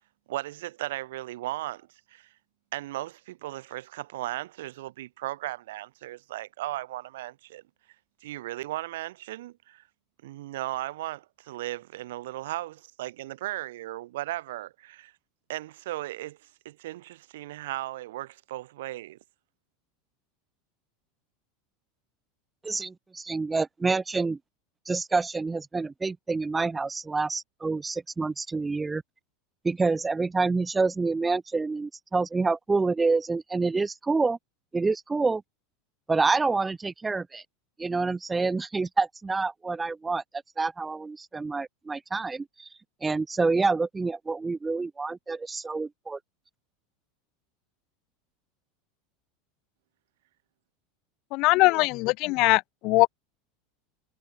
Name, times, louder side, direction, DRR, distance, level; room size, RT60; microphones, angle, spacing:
voice 1, 0.3-2.3 2.7-7.6 8.2-9.8 10.2-15.1 15.5-19.2, right 16 dB, 85° right, 5.5 m, -36 dB
voice 2, 22.6-24.4 24.9-29.0 29.6-34.4 34.7-35.4 36.1-37.4 37.8-40.2 40.6-42.7 43.0-46.2, right 3 dB, 10° right, 2.4 m, -27 dB
voice 3, 51.3-53.1, left 23 dB, 45° left, 0.4 m, -21 dB
supercardioid pair, 165°, 0 cm